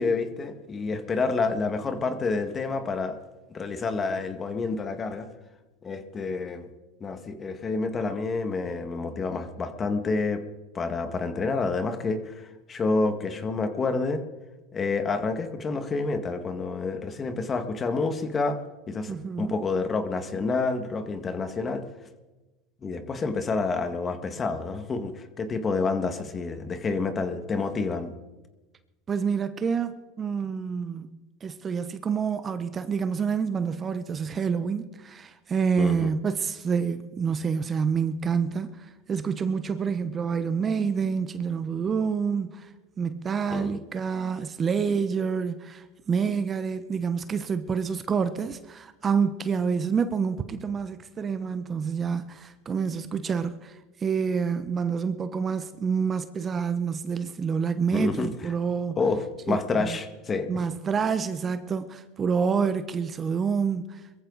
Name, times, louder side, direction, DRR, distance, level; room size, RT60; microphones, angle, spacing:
voice 1, 0.0-3.2 3.5-5.3 5.8-6.7 7.0-10.4 10.7-12.3 12.7-14.2 14.7-18.6 18.9-21.9 22.8-28.1 35.8-36.1 43.5-43.7 57.9-58.3 59.0-60.6, left 4 dB, 25° left, 1.9 m, -28 dB
voice 2, 19.1-19.6 29.1-42.7 43.0-59.0 59.5-60.0 60.5-64.0, right 6 dB, 30° right, 1.0 m, -28 dB
22.5 x 14.5 x 4.1 m
supercardioid pair, 105°, 0 cm